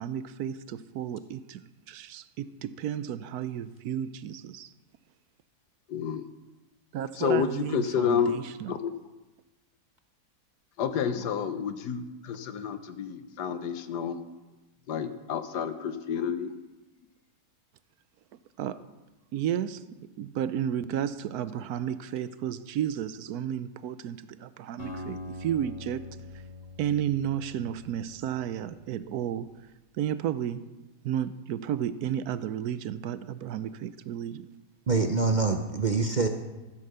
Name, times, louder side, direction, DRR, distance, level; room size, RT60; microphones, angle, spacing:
voice 1, 0.0-4.7 6.9-8.8 18.6-18.8 19.3-19.8 20.2-26.0 26.8-29.5 29.9-30.6 31.0-34.4, right 10 dB, 75° right, 14 dB, 1.1 m, -32 dB
voice 2, 5.9-6.2 7.2-8.4 8.7-8.9 10.8-14.2 14.9-16.5, left 7 dB, 90° left, 10 dB, 1.5 m, -29 dB
Acoustic guitar, 24.8-28.9, left 2 dB, 50° left, 3.3 m, -43 dB
voice 3, 34.9-36.3, right 4 dB, 45° right, 5 dB, 0.6 m, -25 dB
14.5 x 8.5 x 6.7 m, 1.1 s
omnidirectional pair, 1.7 m